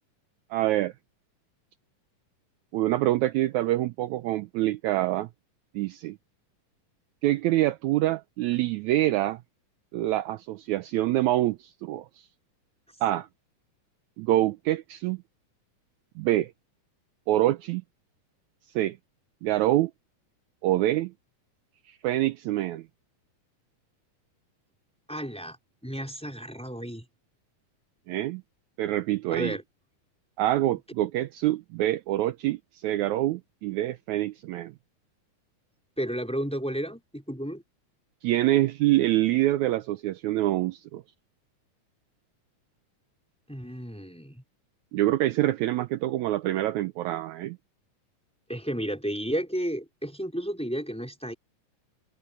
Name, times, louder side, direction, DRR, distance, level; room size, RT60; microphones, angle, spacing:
voice 1, 0.5-0.9 2.7-5.3 5.8-6.2 7.2-9.4 9.9-12.1 13.0-13.3 14.2-15.2 16.2-16.5 17.3-17.8 18.8-19.0 19.4-19.9 20.6-21.1 21.9-22.8 28.1-28.4 28.8-29.6 30.4-34.7 38.2-41.0 44.9-47.6, right 15 dB, 80° right, 1.9 m, -26 dB
voice 2, 25.1-25.6 25.8-27.0 29.3-29.6 36.0-37.6 43.5-44.4 48.5-51.3, equal, ahead, 4.4 m, -32 dB
omnidirectional pair, 3.7 m